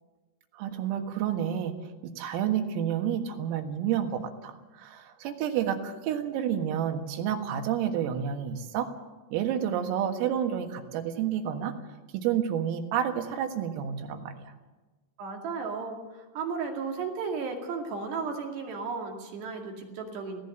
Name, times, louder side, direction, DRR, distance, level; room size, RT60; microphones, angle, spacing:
voice 1, 0.5-1.8 2.0-8.9 9.3-11.7 12.1-14.5, right 9 dB, 90° right, 6 dB, 4.3 m, -30 dB
voice 2, 15.2-20.4, right 5 dB, 60° right, 2 dB, 4.2 m, -34 dB
20.0 x 17.0 x 7.9 m, 1.2 s
omnidirectional pair, 5.8 m